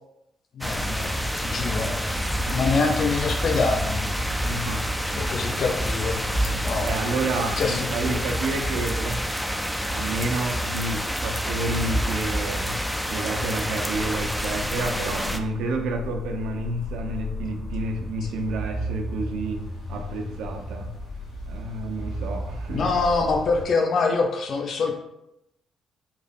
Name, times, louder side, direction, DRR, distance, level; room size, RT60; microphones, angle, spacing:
voice 1, 0.5-4.3 5.2-6.9 7.3-8.2 22.7-25.0, left 4 dB, 55° left, 3 dB, 0.6 m, -26 dB
sound 1, 0.6-15.4, equal, ahead, 0.5 m, -27 dB
voice 2, 4.4-5.3 6.7-9.3 9.9-12.8 13.1-21.0 21.5-22.9, right 2 dB, 70° right, 4 dB, 0.5 m, -30 dB
sound 2, 13.9-23.6, left 1 dB, 80° left, 1.0 m, -35 dB
4.8 x 2.2 x 3.5 m, 0.84 s
hypercardioid pair, 45°, 0 cm